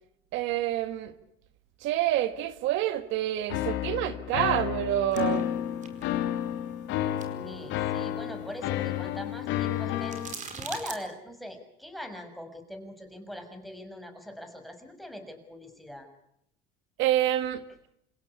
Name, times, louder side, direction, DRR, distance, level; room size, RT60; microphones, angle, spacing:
voice 1, 0.3-1.1 1.8-5.5 17.0-17.6, right 13 dB, 70° right, 1.7 m, -27 dB
sound 1, 3.5-10.3, left 12 dB, 70° left, 2.5 m, -31 dB
sound 2, 5.1-11.0, right 5 dB, 40° right, 4.9 m, -46 dB
voice 2, 7.3-16.1, equal, ahead, 6.4 m, -41 dB
28.5 x 17.0 x 10.0 m
supercardioid pair, 100°, 20 cm